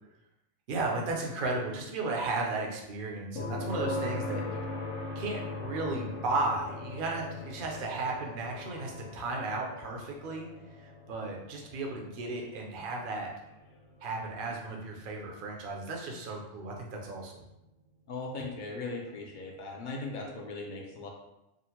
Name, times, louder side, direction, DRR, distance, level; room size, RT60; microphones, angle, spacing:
voice 1, 0.7-4.6 5.2-10.5 11.1-13.3 14.0-17.4, right 2 dB, 55° right, 0 dB, 0.7 m, -34 dB
sound 1, 3.4-17.2 19.4-19.5, left 2 dB, 80° left, 1.0 m, -41 dB
voice 2, 18.1-21.1, left 3 dB, 55° left, 0 dB, 0.6 m, -38 dB
3.7 x 2.0 x 2.9 m, 0.91 s
omnidirectional pair, 1.3 m